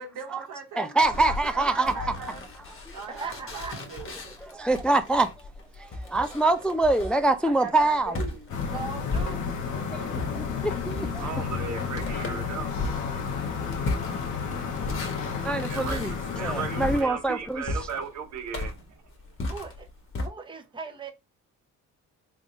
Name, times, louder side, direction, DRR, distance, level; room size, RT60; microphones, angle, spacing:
voice 1, 0.0-2.5 2.9-3.2 3.5-4.3 7.4-8.5, right 5 dB, 90° right, 1.2 m, -39 dB
voice 2, 0.8-2.1 4.4-5.3 5.8-8.2 9.9-11.2 15.4-16.1 16.4-17.6, right 2 dB, 5° left, 0.3 m, -25 dB
sound 1, 1.0-9.7 10.1-20.3, left 2 dB, 45° left, 1.2 m, -36 dB
voice 3, 3.2-4.0 8.7-9.4 19.5-19.9 20.2-21.1, right 4 dB, 15° right, 0.8 m, -38 dB
sound 2, 8.5-17.0, left 6 dB, 85° left, 1.0 m, -32 dB
voice 4, 11.2-12.7 15.7-18.8, right 6 dB, 70° right, 1.1 m, -35 dB
3.7 x 3.5 x 2.5 m
cardioid pair, 90°, 30 cm